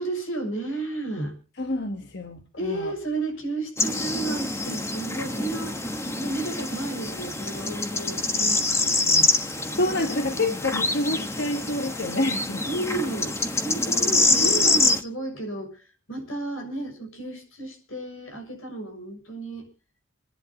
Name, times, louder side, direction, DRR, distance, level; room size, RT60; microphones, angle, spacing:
voice 1, 0.0-1.4 2.6-5.8 6.2-9.3 12.6-19.7, right 2 dB, 90° left, 3 dB, 6.8 m, -32 dB
voice 2, 1.6-2.9 9.7-12.6 14.4-14.7, left 1 dB, 55° left, 5 dB, 1.4 m, -28 dB
sound 1, 3.8-15.0, left 2 dB, 15° left, 1.2 m, -25 dB
28.0 x 11.0 x 2.9 m, 0.36 s
head